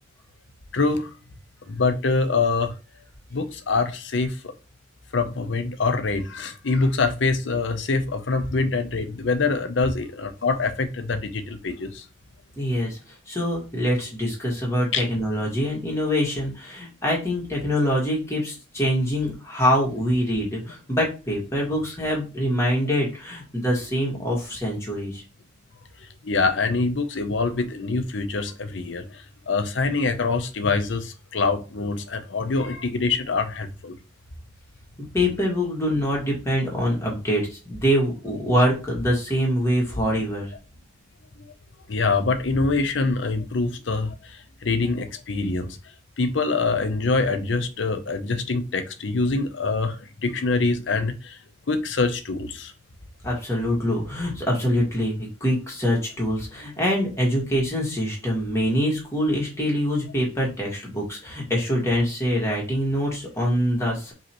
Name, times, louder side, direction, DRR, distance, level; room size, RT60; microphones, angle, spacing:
voice 1, 0.7-1.1 1.7-2.7 3.3-4.3 5.1-12.0 14.9-15.0 26.2-33.9 41.9-44.1 44.6-45.7 46.2-51.4 51.7-52.7, left 3 dB, 70° left, 0.7 m, -24 dB
voice 2, 12.6-13.0 13.3-25.2 35.1-40.5 53.2-64.1, equal, 15° left, 1.7 m, -24 dB
5.0 x 3.2 x 3.0 m
head